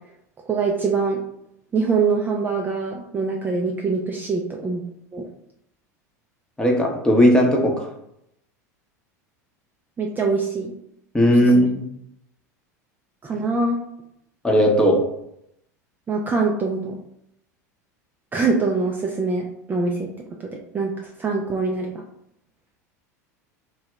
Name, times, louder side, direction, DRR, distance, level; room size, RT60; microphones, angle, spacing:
voice 1, 0.5-1.2 1.7-4.8 5.1-5.2 10.0-10.7 11.4-11.7 13.2-13.8 16.1-17.0 18.3-20.1 20.4-21.9, right 4 dB, 20° right, 0 dB, 0.4 m, -24 dB
voice 2, 6.6-7.9 11.1-11.8 14.4-15.0, equal, 10° left, 0 dB, 0.7 m, -17 dB
2.7 x 2.3 x 3.0 m, 0.76 s
hypercardioid pair, 85°, 9 cm